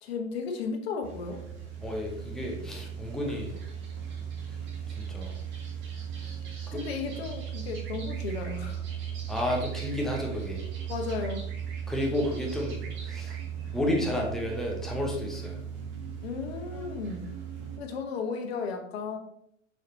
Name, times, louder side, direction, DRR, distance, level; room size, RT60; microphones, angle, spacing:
voice 1, 0.0-1.4 6.7-8.8 10.9-11.4 16.2-17.3 17.8-19.2, left 5 dB, 50° left, 3 dB, 1.3 m, -34 dB
sound 1, 1.0-17.8, right 8 dB, 25° right, 1.6 m, -37 dB
voice 2, 1.8-3.6 5.0-5.3 6.7-6.8 9.3-10.6 11.9-12.8 13.0-13.3 13.7-15.6, left 1 dB, ahead, 0 dB, 0.4 m, -31 dB
6.4 x 6.0 x 2.8 m, 0.70 s
figure-of-eight pair, 105°, 39 cm